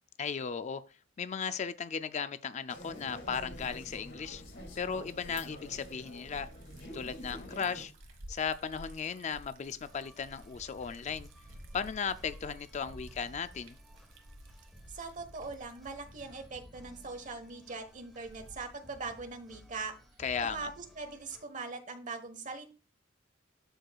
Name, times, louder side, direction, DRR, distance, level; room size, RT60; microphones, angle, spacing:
voice 1, 0.2-0.8 1.2-4.4 4.8-6.5 6.9-7.9 8.3-11.3 11.7-13.8 20.2-20.7, left 6 dB, 35° left, 0.3 m, -36 dB
sound 1, 2.7-7.8, equal, 65° left, 2.4 m, -48 dB
Liquid, 2.8-18.8, right 1 dB, 80° right, 1.5 m, -53 dB
sound 2, 9.8-21.4, equal, ahead, 1.3 m, -57 dB
voice 2, 14.9-19.9 20.4-22.7, right 4 dB, 40° right, 1.2 m, -41 dB
12.5 x 4.7 x 2.3 m
head